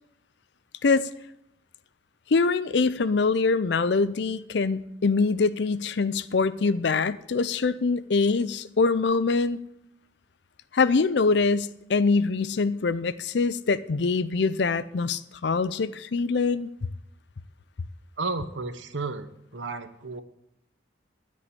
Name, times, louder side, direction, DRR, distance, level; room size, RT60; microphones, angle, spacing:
voice 1, 2.3-9.6 10.7-16.7, left 4 dB, 60° left, 16 dB, 0.5 m, -24 dB
voice 2, 18.2-19.3 19.5-20.2, right 3 dB, 75° right, 10 dB, 0.9 m, -32 dB
13.0 x 5.4 x 8.2 m, 0.82 s
head